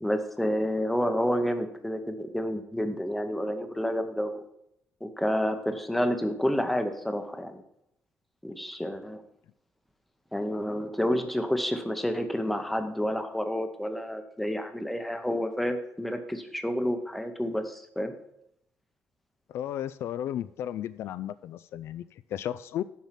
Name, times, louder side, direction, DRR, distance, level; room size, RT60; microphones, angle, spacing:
voice 1, 0.0-4.4 5.0-7.6 8.4-9.2 10.3-18.1, equal, ahead, 7 dB, 0.7 m, -29 dB
voice 2, 19.5-22.8, left 11 dB, 65° left, 15 dB, 0.3 m, -34 dB
7.3 x 5.5 x 7.4 m, 0.78 s
cardioid pair, 165°, 5 cm